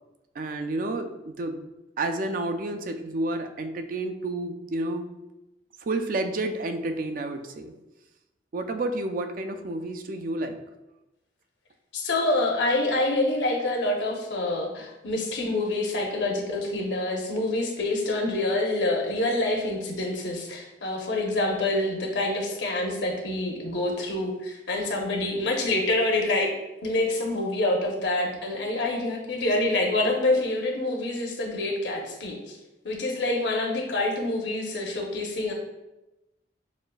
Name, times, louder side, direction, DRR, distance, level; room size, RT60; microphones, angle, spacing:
voice 1, 0.4-1.7 2.0-5.1 5.8-7.7 8.5-10.6, right 2 dB, 50° right, 7 dB, 0.4 m, -30 dB
voice 2, 11.9-26.5 26.8-32.6 32.8-35.5, left 2 dB, 85° left, 1 dB, 0.8 m, -26 dB
6.3 x 2.4 x 2.3 m, 0.98 s
head